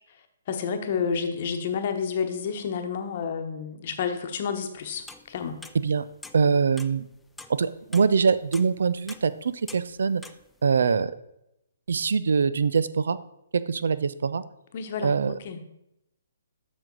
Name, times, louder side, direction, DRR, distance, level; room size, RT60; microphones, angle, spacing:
voice 1, 0.5-5.6 14.7-15.7, left 6 dB, 50° left, 6 dB, 1.0 m, -30 dB
sound 1, 4.8-5.8 6.2-6.5 6.8-7.6 7.9-8.2 8.5-9.4 9.7-10.5, left 3 dB, 5° left, 0.4 m, -44 dB
voice 2, 6.3-7.0 7.6-10.2 10.6-11.1 11.9-13.2 13.5-14.4 15.0-15.3, right 5 dB, 70° right, 15 dB, 0.4 m, -23 dB
7.2 x 6.3 x 3.9 m, 0.82 s
hypercardioid pair, 135°, 0 cm